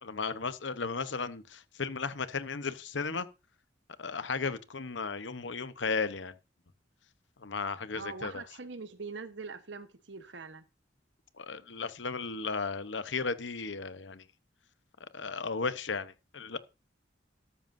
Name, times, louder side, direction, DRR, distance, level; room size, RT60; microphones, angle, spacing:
voice 1, 0.0-3.3 4.0-6.3 7.4-8.4 11.4-14.2 15.0-16.6, left 4 dB, 75° left, 1.0 m, -35 dB
voice 2, 7.9-10.6, right 4 dB, 75° right, 1.2 m, -43 dB
13.0 x 12.5 x 2.7 m
head